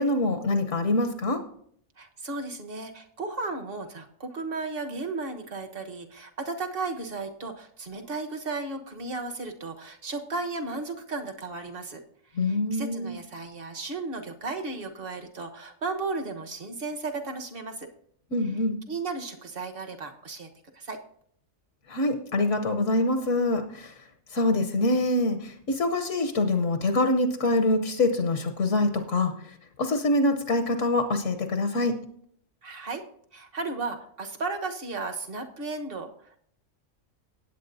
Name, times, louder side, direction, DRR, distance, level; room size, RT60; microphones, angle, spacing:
voice 1, 0.0-1.4 12.4-13.2 18.3-18.8 21.9-24.0 24.3-32.0, left 2 dB, 70° left, 8 dB, 1.2 m, -25 dB
voice 2, 2.0-12.0 12.3-17.9 18.9-21.0 32.6-33.0 33.3-36.4, right 3 dB, 45° right, 5 dB, 1.3 m, -35 dB
17.5 x 8.3 x 2.7 m, 0.64 s
omnidirectional pair, 1.4 m